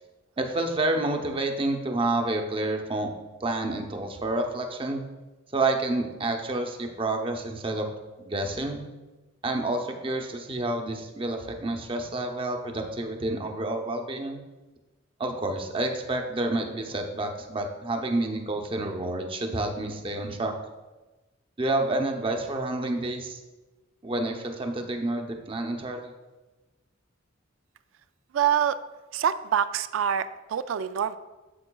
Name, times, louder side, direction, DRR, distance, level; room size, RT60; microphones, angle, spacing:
voice 1, 0.4-3.1 3.4-5.0 5.5-7.9 8.2-8.8 9.4-14.4 15.2-20.5 21.6-23.4 24.0-26.1, right 2 dB, 25° right, 3 dB, 0.7 m, -29 dB
voice 2, 28.3-28.8 29.1-30.2 30.5-31.2, right 9 dB, 75° right, 13 dB, 0.3 m, -25 dB
8.6 x 7.6 x 2.3 m, 1.2 s
head